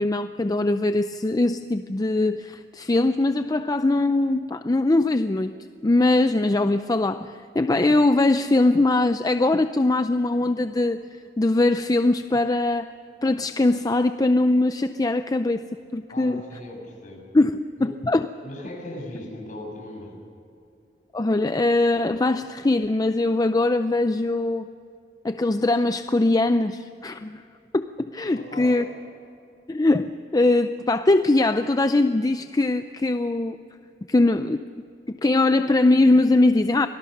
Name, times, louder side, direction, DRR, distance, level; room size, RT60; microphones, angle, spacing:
voice 1, 0.0-5.5 5.8-11.0 11.4-12.9 13.2-15.6 15.9-16.4 17.3-18.3 21.1-24.7 25.2-27.4 27.7-28.8 29.7-33.6 34.1-34.7 35.1-36.9, left 2 dB, 20° left, 10 dB, 0.5 m, -21 dB
voice 2, 16.1-17.3 17.8-17.9 18.4-20.2 28.3-28.8, left 1 dB, 45° left, 0 dB, 6.7 m, -38 dB
25.0 x 18.5 x 6.6 m, 2.5 s
head